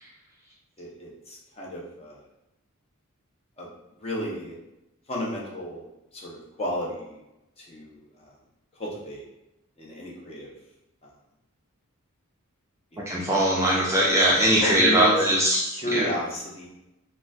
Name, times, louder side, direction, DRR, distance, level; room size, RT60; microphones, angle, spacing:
voice 1, 0.8-2.2 3.6-3.7 4.0-4.6 5.1-5.9 6.1-7.2 7.6-8.4 8.8-9.2 9.8-10.5 12.9-13.9 14.6-15.3 15.7-16.7, left 1 dB, 25° left, -3 dB, 0.6 m, -33 dB
voice 2, 13.1-16.1, right 1 dB, 15° right, -5 dB, 0.3 m, -21 dB
3.7 x 2.1 x 2.3 m, 0.92 s
head